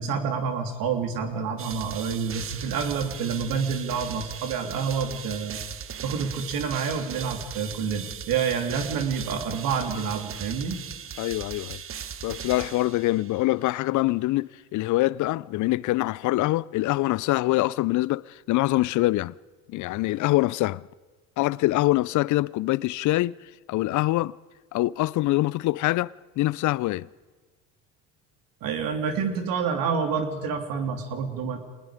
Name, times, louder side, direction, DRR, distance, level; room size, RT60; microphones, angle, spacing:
voice 1, 0.0-5.6 6.0-10.8 28.6-31.6, right 6 dB, 65° right, 3.2 m, -28 dB
sound 1, 1.6-13.5, right 8 dB, 35° right, 1.2 m, -38 dB
voice 2, 11.2-11.8 12.2-19.3 19.7-20.8 21.4-23.4 23.7-24.3 24.7-27.1, left 18 dB, 50° left, 0.6 m, -24 dB
26.5 x 20.0 x 5.1 m
supercardioid pair, 80°, 37 cm